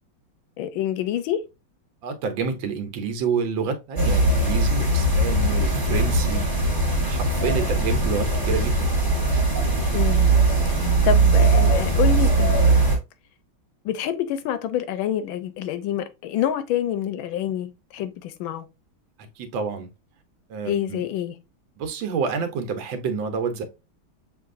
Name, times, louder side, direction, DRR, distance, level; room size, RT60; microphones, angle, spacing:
voice 1, 0.6-1.4 9.9-10.3 10.8-12.6 13.8-18.7 20.6-21.3, left 10 dB, 80° left, 1.4 m, -27 dB
voice 2, 2.0-6.7 7.0-8.9 19.4-19.9 20.5-21.0 21.8-23.6, right 5 dB, 75° right, 1.5 m, -28 dB
sound 1, 4.0-13.0, right 2 dB, 15° right, 1.0 m, -20 dB
6.5 x 2.6 x 2.5 m
omnidirectional pair, 2.2 m